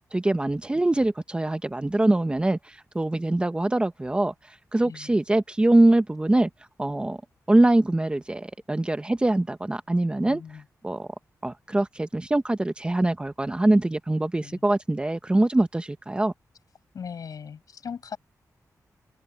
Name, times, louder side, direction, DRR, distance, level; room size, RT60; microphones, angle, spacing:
voice 1, 0.1-4.3 4.7-6.5 6.8-7.2 7.5-10.4 10.8-11.1 11.4-16.3, right 2 dB, 15° right, 1.1 m, -23 dB
voice 2, 4.8-5.2 10.2-10.7 14.4-14.6 16.9-18.2, left 7 dB, 70° left, 7.7 m, -39 dB
open air
wide cardioid pair, 115°, 6 cm